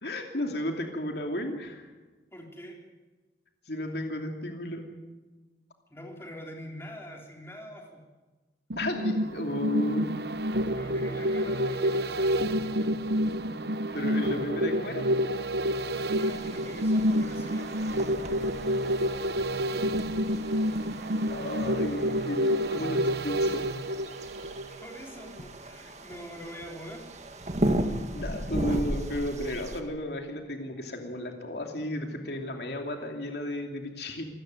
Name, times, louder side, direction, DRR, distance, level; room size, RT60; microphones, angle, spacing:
voice 1, 0.0-1.9 3.7-4.9 8.8-10.1 13.9-15.1 21.3-23.6 28.1-34.3, left 1 dB, 65° left, 3 dB, 2.8 m, -33 dB
voice 2, 2.3-2.8 5.9-8.0 10.8-13.0 15.9-17.9 24.8-27.1, equal, 15° left, 0 dB, 3.8 m, -44 dB
sound 1, 8.7-24.9 25.3-25.4, equal, 65° right, 0.9 m, -28 dB
sound 2, 16.1-29.8, right 1 dB, 40° right, 1.9 m, -36 dB
26.5 x 14.0 x 9.3 m, 1.2 s
head